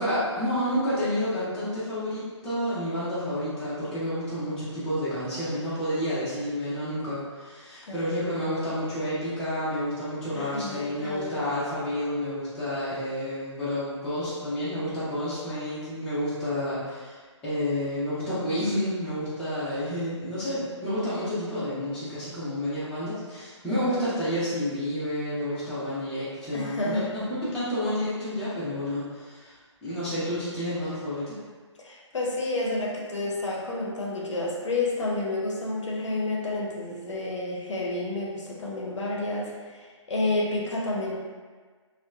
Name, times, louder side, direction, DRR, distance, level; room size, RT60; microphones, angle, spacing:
voice 1, 0.0-27.2 27.5-29.5 29.8-31.4, equal, 5° left, -13 dB, 0.6 m, -30 dB
voice 2, 7.9-8.3 10.3-11.6 23.7-24.1 26.5-27.1 31.8-41.1, left 2 dB, 70° left, -3 dB, 0.6 m, -30 dB
2.9 x 2.1 x 2.2 m, 1.5 s
figure-of-eight pair, 145°, 16 cm